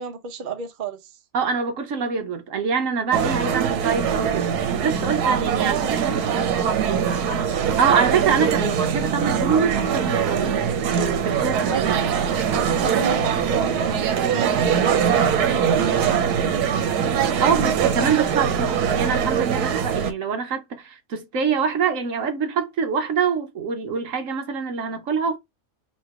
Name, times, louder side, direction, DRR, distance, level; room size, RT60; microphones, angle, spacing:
voice 1, 0.0-1.2 5.3-7.0 8.2-8.7 11.4-11.8 12.5-15.0 15.4-16.3 17.7-18.4, right 6 dB, 45° right, 0.7 m, -31 dB
voice 2, 1.3-4.5 4.8-6.1 7.8-10.6 10.9-12.0 17.4-25.4, right 6 dB, 60° right, 1.0 m, -25 dB
sound 1, 3.1-20.1, right 7 dB, 80° right, 1.2 m, -22 dB
3.1 x 2.9 x 4.6 m
omnidirectional pair, 1.6 m